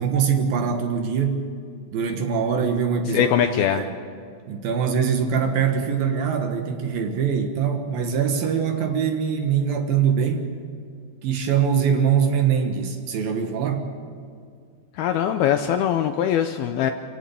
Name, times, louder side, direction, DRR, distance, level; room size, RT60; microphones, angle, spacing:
voice 1, 0.0-1.4 1.9-3.3 3.7-3.9 4.5-10.5 11.2-13.9, right 7 dB, 65° right, 5 dB, 2.9 m, -23 dB
voice 2, 3.1-3.9 15.0-16.9, left 9 dB, 80° left, 7 dB, 2.3 m, -21 dB
27.0 x 16.5 x 7.1 m, 2.3 s
omnidirectional pair, 5.1 m